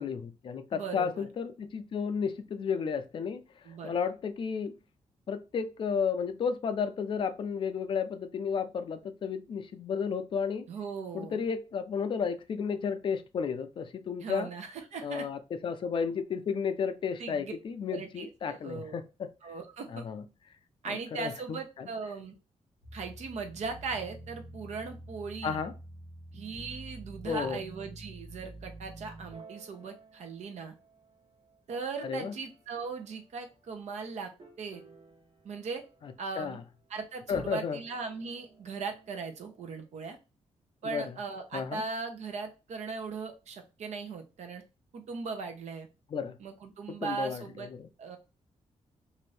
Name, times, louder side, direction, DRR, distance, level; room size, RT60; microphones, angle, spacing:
voice 1, 0.0-3.4 3.8-4.8 5.3-10.7 11.1-14.5 15.0-19.3 19.9-20.2 20.8-21.9 25.4-25.7 27.2-27.6 32.0-32.3 36.0-36.6 37.3-37.8 40.8-41.2 41.5-41.8 46.1-46.4 46.9-47.9, left 6 dB, 45° left, 0.4 m, -33 dB
voice 2, 0.7-1.3 3.6-4.0 10.7-11.4 14.2-15.3 17.2-17.5 17.9-19.0 19.4-20.0 20.8-22.3 22.9-25.6 26.3-30.7 31.7-34.3 34.6-34.8 35.4-35.8 36.2-36.6 36.9-40.2 40.8-44.6 44.9-45.9 46.4-47.7 48.0-48.2, right 4 dB, 70° right, 0.7 m, -38 dB
sound 1, 22.8-31.1 31.7-32.6 34.4-36.1 37.2-39.8, right 2 dB, 50° right, 1.0 m, -49 dB
2.6 x 2.6 x 3.2 m
wide cardioid pair, 165°, 12 cm